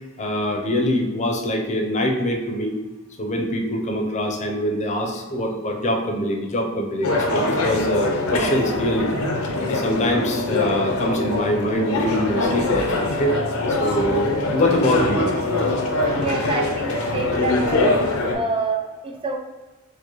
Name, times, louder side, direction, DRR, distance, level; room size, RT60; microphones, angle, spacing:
voice 1, 0.2-2.8 3.2-9.1 9.7-13.4 13.7-15.3, equal, 35° left, 2 dB, 0.5 m, -24 dB
sound 1, 7.0-18.3, left 2 dB, 80° left, 0.6 m, -23 dB
voice 2, 16.2-17.9 18.3-19.4, right 3 dB, 25° right, 2 dB, 0.3 m, -27 dB
4.6 x 2.1 x 2.9 m, 1.2 s
head